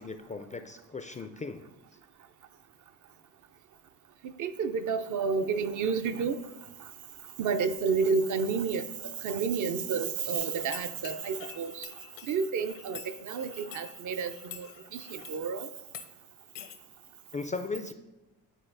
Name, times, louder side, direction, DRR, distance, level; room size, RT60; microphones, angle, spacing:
voice 1, 0.0-1.6 17.3-17.9, left 4 dB, 20° left, 0.3 m, -37 dB
voice 2, 4.4-6.4 7.4-8.8 9.2-11.9 12.3-14.7 14.9-15.7, right 5 dB, 45° right, 0.5 m, -30 dB
sound 1, 10.4-15.4 15.9-16.1 16.6-16.8, left 9 dB, 75° left, 0.8 m, -47 dB
9.9 x 3.9 x 2.6 m
supercardioid pair, 75°, 43 cm